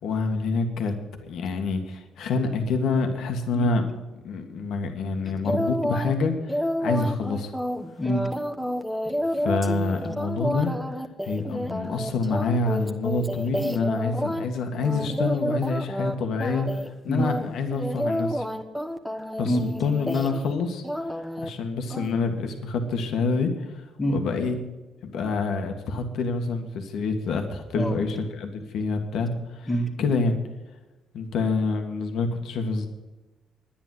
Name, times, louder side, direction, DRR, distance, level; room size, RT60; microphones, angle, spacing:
voice 1, 0.0-0.9 1.3-3.8 4.2-7.5 9.4-10.7 11.2-18.5 19.4-20.8 21.4-23.8 24.1-24.6 25.0-29.7 30.0-30.4 31.1-32.9, left 4 dB, 75° left, 4 dB, 1.8 m, -27 dB
sound 1, 5.4-6.1 6.5-14.5 14.8-16.1 16.4-16.9 17.2-20.5 20.8-21.5 21.9-22.1, equal, ahead, 1.1 m, -29 dB
voice 2, 8.0-8.4 17.1-17.3 19.4-19.6 24.0-24.2 27.7-28.0 29.7-29.9, equal, 25° left, -5 dB, 2.0 m, -25 dB
10.5 x 10.0 x 7.9 m, 1.1 s
cardioid pair, 90°, 0 cm